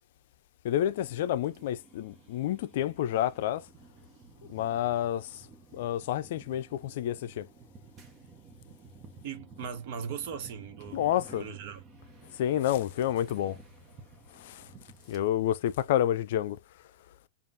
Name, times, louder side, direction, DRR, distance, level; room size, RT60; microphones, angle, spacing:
voice 1, 0.6-3.7 4.5-5.5 5.7-7.5 10.9-11.5 12.3-13.6 14.3-14.7 15.1-16.6, left 11 dB, 65° left, 0.4 m, -29 dB
sound 1, 0.9-15.2, right 3 dB, 30° right, 1.1 m, -53 dB
voice 2, 9.2-11.8, right 7 dB, 55° right, 1.2 m, -39 dB
5.2 x 2.4 x 2.7 m
hypercardioid pair, 130°, 0 cm